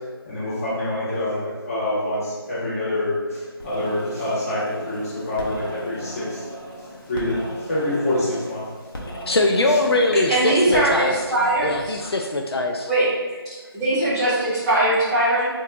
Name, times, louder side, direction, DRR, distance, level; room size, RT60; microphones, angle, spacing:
voice 1, 0.2-8.7 9.7-9.8 12.0-12.1, left 1 dB, 35° left, -11 dB, 1.5 m, -26 dB
sound 1, 3.6-12.0, equal, 60° left, 0.8 m, -37 dB
voice 2, 9.3-11.2 11.6-12.9, left 2 dB, 80° left, 2 dB, 0.4 m, -21 dB
voice 3, 10.3-12.0 12.9-13.1 13.4-15.5, right 1 dB, 5° right, -16 dB, 1.2 m, -21 dB
2.8 x 2.3 x 3.7 m, 1.4 s
figure-of-eight pair, 165°, 13 cm